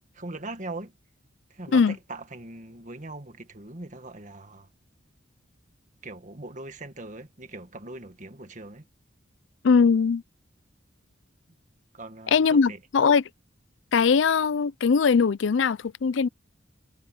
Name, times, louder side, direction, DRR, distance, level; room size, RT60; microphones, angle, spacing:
voice 1, 0.1-0.9 1.5-4.7 6.0-8.9 11.9-12.8, right 2 dB, 40° right, 1.8 m, -40 dB
voice 2, 9.6-10.2 12.3-13.2 13.9-16.3, left 5 dB, 70° left, 0.4 m, -21 dB
head